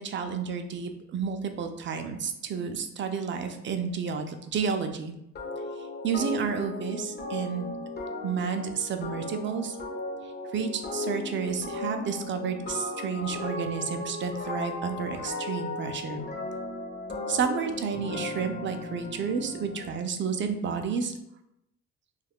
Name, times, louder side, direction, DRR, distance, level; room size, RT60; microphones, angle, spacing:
voice 1, 0.0-5.1 5.8-7.7 8.2-9.8 10.2-16.2 17.3-21.1, right 6 dB, 40° right, 6 dB, 0.4 m, -31 dB
sound 1, 5.4-20.0, left 2 dB, 35° left, 0.6 m, -36 dB
2.3 x 2.1 x 3.4 m, 0.81 s
cardioid pair, 90°, 30 cm